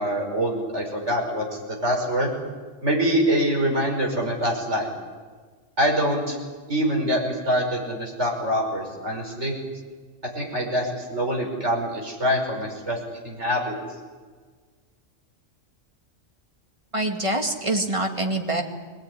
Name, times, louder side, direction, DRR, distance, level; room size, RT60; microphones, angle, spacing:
voice 1, 0.0-2.3 2.8-4.9 5.8-6.4 6.7-9.5 10.3-13.7, equal, 65° right, 0 dB, 6.0 m, -25 dB
voice 2, 16.9-18.6, right 1 dB, 25° right, 2 dB, 2.5 m, -25 dB
22.5 x 19.5 x 9.9 m, 1.5 s
omnidirectional pair, 1.3 m